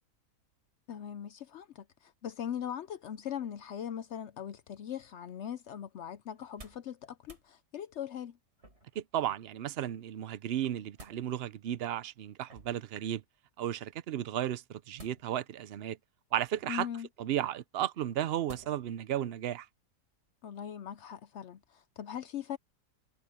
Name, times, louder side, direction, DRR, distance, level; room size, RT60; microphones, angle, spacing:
voice 1, 0.9-8.4 16.7-17.1 20.4-22.6, left 9 dB, 65° left, 0.7 m, -40 dB
sound 1, 6.4-6.9 7.2-7.5 8.6-9.1 10.5-11.2 12.5-12.9 14.9-15.6 16.3-16.8 18.5-19.0 19.4-19.5, right 1 dB, 45° right, 7.4 m, -53 dB
voice 2, 8.9-13.2 13.6-16.0 16.3-16.9 17.2-19.7, right 11 dB, 60° right, 0.6 m, -34 dB
omnidirectional pair, 1.7 m